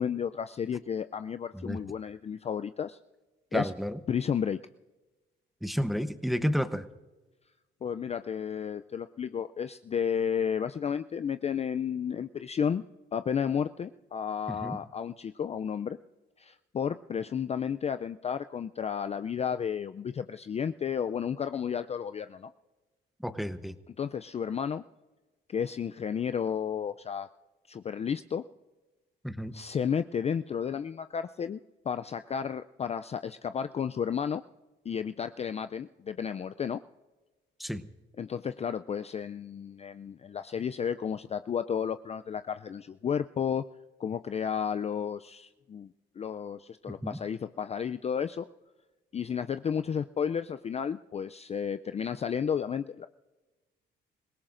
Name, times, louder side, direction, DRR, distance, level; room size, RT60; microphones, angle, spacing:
voice 1, 0.0-3.0 3.5-3.7 4.1-4.6 7.8-12.8 13.1-16.0 16.4-22.5 24.0-24.8 25.5-27.3 27.7-28.4 29.5-34.4 34.9-36.8 38.2-43.6 44.0-48.5 49.1-53.1, left 7 dB, 30° left, 11 dB, 0.4 m, -32 dB
voice 2, 3.5-4.0 5.6-6.9 14.5-14.8 23.2-23.7 29.2-29.5 37.6-37.8 46.9-47.2, equal, ahead, 11 dB, 0.9 m, -31 dB
25.5 x 17.5 x 2.6 m, 1.2 s
cardioid pair, 90°, 20 cm